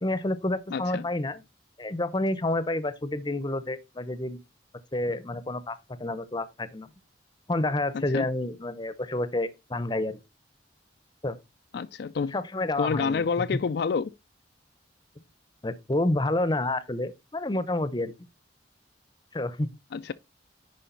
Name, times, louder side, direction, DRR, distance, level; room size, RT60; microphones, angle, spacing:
voice 1, 0.0-1.4 1.8-4.4 4.9-6.9 7.5-10.2 11.2-11.4 12.3-13.2 13.5-13.6 15.6-18.1 19.3-19.7, left 2 dB, 25° left, 0.7 m, -29 dB
voice 2, 0.7-1.1 7.9-8.3 11.7-12.3 12.8-14.1 19.9-20.1, left 5 dB, 60° left, 0.3 m, -28 dB
10.0 x 5.1 x 3.9 m
head